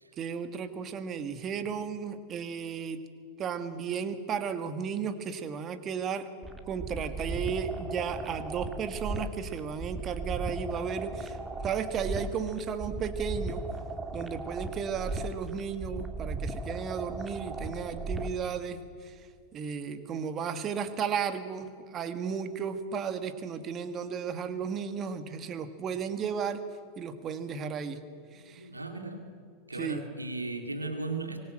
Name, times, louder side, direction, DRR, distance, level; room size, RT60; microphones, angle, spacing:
voice 1, 0.2-3.0 3.4-6.3 6.7-13.6 14.1-26.6 27.0-28.0 28.3-28.7 29.7-30.0, right 7 dB, 30° right, 10 dB, 1.9 m, -34 dB
sound 1, 6.4-18.4, right 2 dB, 10° right, 2.1 m, -37 dB
voice 2, 28.4-29.3 29.7-31.4, right 3 dB, 85° right, 5 dB, 2.3 m, -36 dB
25.0 x 21.0 x 7.8 m, 2.2 s
figure-of-eight pair, 90°, 0 cm